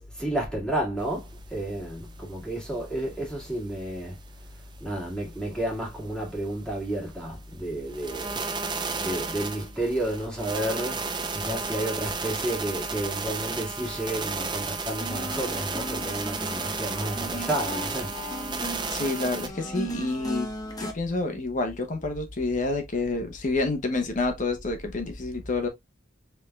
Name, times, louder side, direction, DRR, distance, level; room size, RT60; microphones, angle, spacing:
voice 1, 0.0-4.2 4.8-8.4 8.9-11.0 11.3-18.1, right 1 dB, 5° left, 1.9 m, -31 dB
sound 1, 1.0-1.1 1.4-1.5 1.9-2.0 2.4-2.5 2.9-3.5 3.9-4.0 4.4-4.5 5.0-5.1 5.5-5.6 6.0-6.1 6.5-6.6 6.9-7.0 7.5-7.6 7.9-19.5, right 4 dB, 25° right, 0.7 m, -33 dB
sound 2, 15.0-20.9, equal, 20° left, 1.1 m, -37 dB
voice 2, 18.9-20.5 20.8-25.7, left 3 dB, 40° left, 0.9 m, -28 dB
5.4 x 3.5 x 2.2 m
head